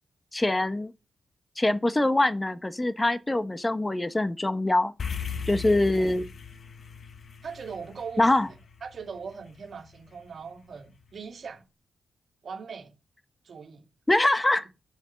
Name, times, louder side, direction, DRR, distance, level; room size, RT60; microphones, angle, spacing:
voice 1, 0.3-0.9 1.6-4.9 5.5-6.3 8.2-8.5 14.1-14.7, left 2 dB, 20° left, 1.0 m, -24 dB
sound 1, 5.0-9.5, left 6 dB, 60° left, 1.2 m, -37 dB
voice 2, 7.4-8.5 8.8-11.6 12.4-12.9 13.4-13.9, right 5 dB, 60° right, 2.5 m, -40 dB
7.1 x 5.9 x 5.7 m
cardioid pair, 60°, 0 cm